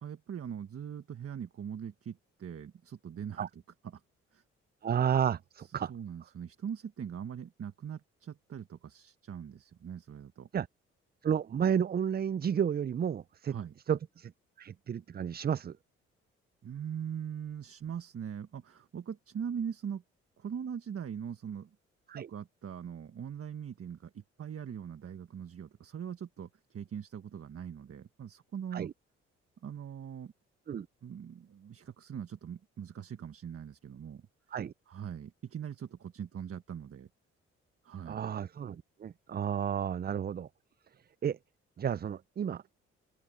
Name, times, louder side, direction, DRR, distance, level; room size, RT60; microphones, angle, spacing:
voice 1, 0.0-3.6 3.9-4.0 4.3-4.4 5.6-10.5 13.5-13.7 16.6-20.0 20.4-21.7 22.1-28.9 29.6-30.3 31.0-34.3 34.9-37.1 37.8-38.2, right 8 dB, 50° right, 1.5 m, -41 dB
voice 2, 4.8-5.9 10.5-10.7 11.2-13.5 13.9-14.3 14.6-15.8 22.1-22.3 28.7-28.9 30.7-30.9 34.5-34.7 38.1-40.5 41.2-41.4 41.8-42.6, right 8 dB, 35° right, 0.5 m, -31 dB
open air
supercardioid pair, 55°, 30 cm